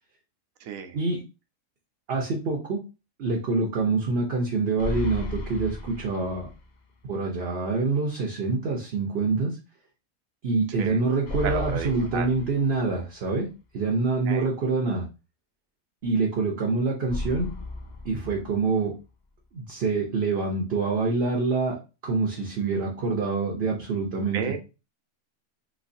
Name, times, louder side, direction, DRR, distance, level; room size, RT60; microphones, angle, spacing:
voice 1, 0.6-1.0 10.8-11.0 11.4-12.3 14.2-14.5 24.3-24.6, right 7 dB, 75° right, 7 dB, 1.0 m, -32 dB
voice 2, 2.1-2.8 3.2-6.5 7.1-9.6 10.4-13.5 13.7-15.1 16.0-17.5 18.0-18.9 19.5-21.8 22.0-24.6, right 3 dB, 55° right, 0 dB, 0.8 m, -26 dB
sound 1, 4.8-6.8 7.1-7.2 11.2-13.2 17.1-19.0, left 2 dB, 60° left, 0.4 m, -35 dB
3.1 x 3.1 x 2.6 m, 0.30 s
omnidirectional pair, 1.5 m